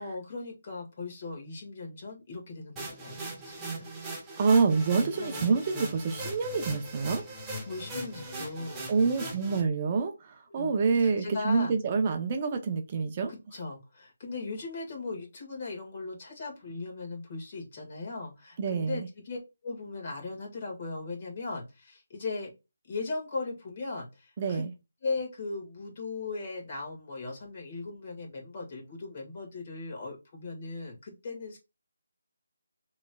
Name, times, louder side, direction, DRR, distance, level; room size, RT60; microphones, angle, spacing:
voice 1, 0.0-3.2 3.5-3.9 5.2-5.9 7.7-9.4 10.5-11.7 13.3-22.5 22.9-24.6 25.0-31.6, left 3 dB, 40° left, 1.8 m, -38 dB
sound 1, 2.8-9.6, right 1 dB, 10° right, 1.0 m, -39 dB
voice 2, 4.4-7.3 8.9-13.3 18.6-19.1 24.4-24.7, right 4 dB, 30° right, 0.6 m, -27 dB
6.0 x 3.1 x 2.3 m
figure-of-eight pair, 160°, 0 cm